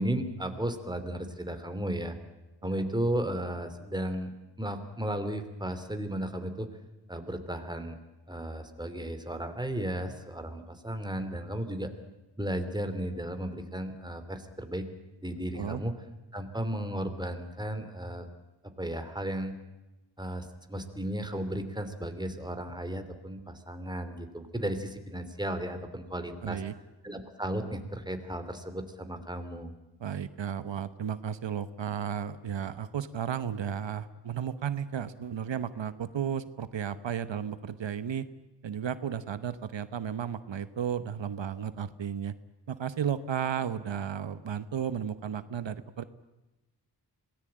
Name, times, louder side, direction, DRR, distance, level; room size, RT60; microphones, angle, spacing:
voice 1, 0.0-2.1 2.6-4.3 4.6-6.7 7.1-8.0 8.3-11.9 12.4-14.9 15.2-15.9 16.3-18.3 18.8-19.5 20.2-26.6 27.0-29.7, right 1 dB, 10° right, 8 dB, 2.9 m, -34 dB
voice 2, 26.4-26.7 30.0-38.3 38.6-42.3 42.7-46.0, right 8 dB, 85° right, 13 dB, 1.1 m, -33 dB
26.0 x 18.5 x 8.9 m, 1.0 s
wide cardioid pair, 90°, 43 cm